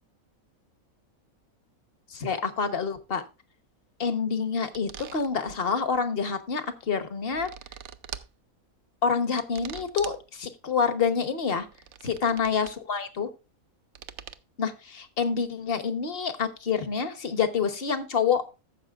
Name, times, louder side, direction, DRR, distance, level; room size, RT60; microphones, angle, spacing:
voice 1, 2.1-3.2 4.0-7.5 9.0-11.7 12.0-13.3 14.6-18.4, left 6 dB, 45° left, 10 dB, 1.2 m, -27 dB
sound 1, 4.7-5.6 7.0-8.3 9.4-10.2 11.6-12.8 14.0-14.4, right 9 dB, 65° right, 0.8 m, -43 dB
15.0 x 7.2 x 2.4 m, 0.29 s
omnidirectional pair, 1.5 m